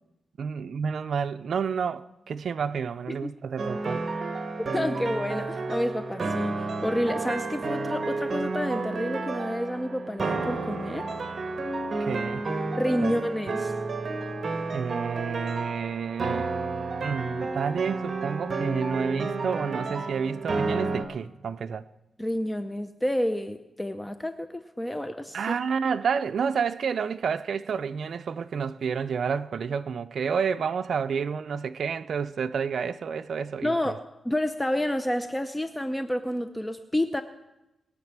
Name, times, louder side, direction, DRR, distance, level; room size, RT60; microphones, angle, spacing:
voice 1, 0.4-4.2 12.0-12.5 13.0-13.2 14.7-16.5 17.0-21.9 25.3-34.0, right 6 dB, 70° right, 0.4 m, -30 dB
sound 1, 3.6-21.0, right 3 dB, 45° right, 1.4 m, -31 dB
voice 2, 4.7-11.1 12.8-13.7 22.2-25.5 33.6-34.0 34.2-37.2, left 1 dB, 10° left, 0.6 m, -29 dB
21.5 x 7.2 x 6.0 m
cardioid pair, 85°, 0 cm